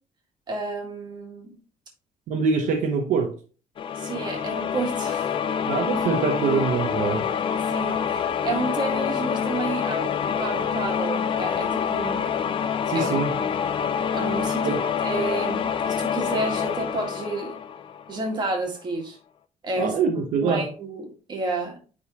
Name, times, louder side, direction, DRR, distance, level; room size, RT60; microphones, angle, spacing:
voice 1, 0.5-1.5 4.0-5.4 7.7-12.3 12.9-13.5 14.1-17.6 18.1-19.2 19.6-19.9 20.4-21.8, right 2 dB, 30° right, 1 dB, 1.9 m, -31 dB
voice 2, 2.3-3.3 5.7-7.3 12.9-13.3 14.6-14.8 19.8-20.7, right 5 dB, 65° right, 3 dB, 0.9 m, -24 dB
sound 1, 3.8-18.4, left 7 dB, 35° left, 0.5 m, -26 dB
9.6 x 3.9 x 3.0 m, 0.37 s
cardioid pair, 170°, 15 cm